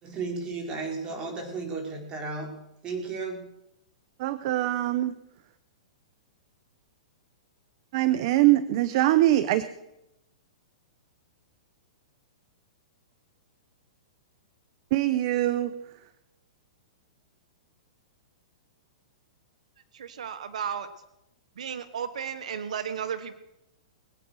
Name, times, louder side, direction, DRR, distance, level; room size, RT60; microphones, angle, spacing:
voice 1, 0.0-3.4, right 4 dB, 25° right, 2 dB, 4.3 m, -34 dB
voice 2, 4.2-5.1 7.9-9.6 14.9-15.7, right 15 dB, 50° right, 13 dB, 0.8 m, -23 dB
voice 3, 20.0-20.9 21.6-23.3, right 8 dB, 80° right, 11 dB, 1.2 m, -33 dB
22.0 x 8.7 x 6.5 m, 0.89 s
hypercardioid pair, 140°, 4 cm